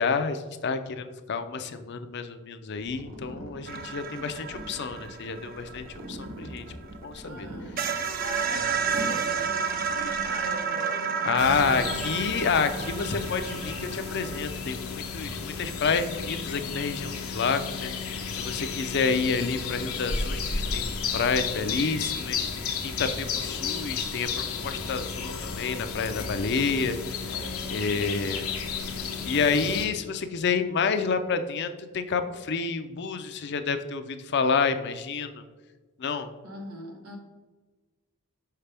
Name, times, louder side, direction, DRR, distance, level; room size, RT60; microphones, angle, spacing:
voice 1, 0.0-6.7 7.0-7.5 7.8-8.0 11.2-27.2 27.7-28.5 28.8-35.4 36.0-36.3, left 5 dB, 50° left, 9 dB, 0.5 m, -29 dB
sound 1, 2.7-10.4, equal, 60° right, 1.0 m, -43 dB
sound 2, 3.7-7.1 7.4-7.5 7.8-14.5, right 6 dB, 40° right, 0.5 m, -31 dB
voice 2, 7.2-7.8 8.2-12.4 14.5-14.6 36.4-37.2, right 1 dB, 80° right, 2 dB, 1.2 m, -40 dB
sound 3, 11.4-29.8, left 5 dB, 85° left, 1.0 m, -33 dB
5.8 x 5.7 x 3.4 m, 1.3 s
head